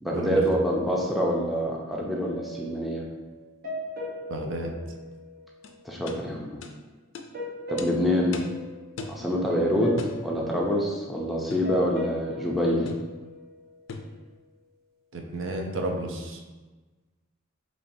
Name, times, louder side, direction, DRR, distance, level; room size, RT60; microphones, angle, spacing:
voice 1, 0.0-3.1 5.8-6.5 7.7-8.4 9.1-12.9, equal, ahead, -3 dB, 0.4 m, -26 dB
sound 1, 2.1-5.9 7.3-9.2 9.5-14.0, left 1 dB, 50° right, 0.8 m, -38 dB
voice 2, 4.3-4.7 15.1-16.4, right 1 dB, 70° right, 2 dB, 0.5 m, -31 dB
sound 2, 5.6-5.7 6.1-6.2 6.6-6.7 7.1-7.3 7.8-7.9 8.3-8.6 9.0-9.2 10.0-10.2 11.5-11.7 12.8-13.1 13.9-14.1, left 3 dB, 65° left, 0.4 m, -37 dB
4.3 x 3.1 x 2.6 m, 1.2 s
head